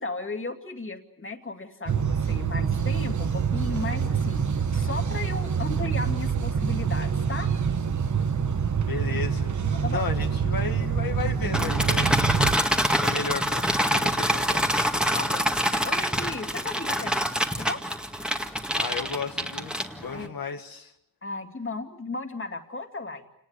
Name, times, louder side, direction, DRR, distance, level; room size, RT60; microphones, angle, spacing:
voice 1, 0.0-7.5 9.7-10.0 15.1-17.3 17.5-17.8 20.1-20.4 21.2-23.2, left 3 dB, 35° left, 5 dB, 2.5 m, -35 dB
sound 1, 1.9-12.5, right 6 dB, 55° right, 1.1 m, -26 dB
voice 2, 8.8-9.5 9.9-14.7 18.7-20.9, left 5 dB, 85° left, 4 dB, 1.6 m, -34 dB
sound 2, 11.5-20.3, equal, 5° right, 2.0 m, -26 dB
28.5 x 19.0 x 8.2 m, 0.82 s
wide cardioid pair, 95°, 34 cm